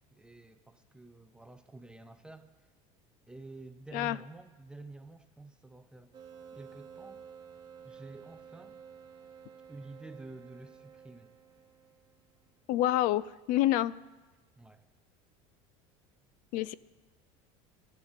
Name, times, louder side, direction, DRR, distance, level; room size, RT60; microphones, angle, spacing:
voice 1, 0.1-2.5 3.3-6.1 6.5-7.2 7.8-8.8 9.7-11.3 14.6-14.9, right 2 dB, 5° right, 9 dB, 0.8 m, -49 dB
sound 1, 6.1-12.5, right 7 dB, 30° right, 2.1 m, -52 dB
voice 2, 12.7-13.9 16.5-16.7, left 14 dB, 60° left, 20 dB, 0.4 m, -27 dB
12.5 x 12.0 x 7.3 m, 1.2 s
supercardioid pair, 125°, 15 cm